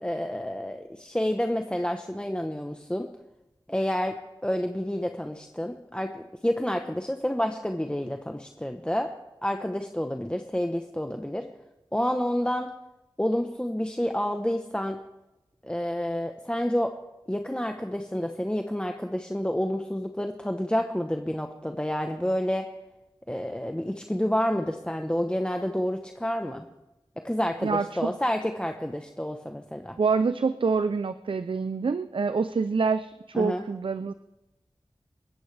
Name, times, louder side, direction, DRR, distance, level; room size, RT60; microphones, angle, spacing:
voice 1, 0.0-3.1 3.7-4.1 4.4-9.1 9.4-11.4 11.9-12.7 13.2-15.0 15.6-16.9 17.3-22.7 23.3-26.6 27.2-30.0 33.3-33.6, equal, 10° left, 5 dB, 1.0 m, -29 dB
voice 2, 27.6-28.2 30.0-34.1, right 4 dB, 70° right, 11 dB, 0.5 m, -26 dB
27.0 x 14.0 x 3.4 m, 0.98 s
wide cardioid pair, 50°, 9 cm